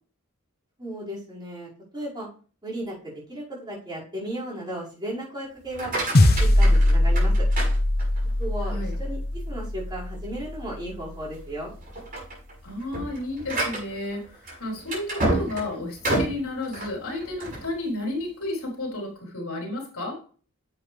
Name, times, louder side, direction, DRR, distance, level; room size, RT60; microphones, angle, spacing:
voice 1, 0.8-2.3 2.6-7.4 8.4-11.7, right 1 dB, 20° right, -7 dB, 5.5 m, -35 dB
sound 1, 5.6-8.4 8.9-9.4 9.8-9.9 10.4-10.5 11.2-11.5 11.8-17.7, right 1 dB, 40° right, 6.1 m, -30 dB
KD Daft Kick, 6.1-10.7, left 1 dB, 45° left, 0.8 m, -21 dB
voice 2, 12.6-20.2, left 2 dB, 65° left, -1 dB, 4.4 m, -32 dB
11.0 x 7.9 x 3.4 m, 0.40 s
head